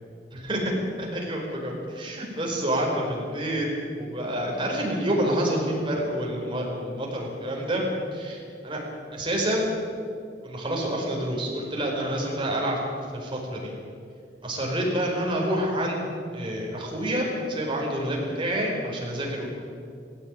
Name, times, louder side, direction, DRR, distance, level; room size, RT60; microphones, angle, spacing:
voice 1, 0.3-0.7 1.0-3.7 4.0-7.8 8.1-8.8 9.1-9.7 10.4-12.8 13.1-13.7 14.4-16.1 16.3-19.6, right 1 dB, 30° right, -2 dB, 5.2 m, -28 dB
17.5 x 17.0 x 9.3 m, 2.4 s
head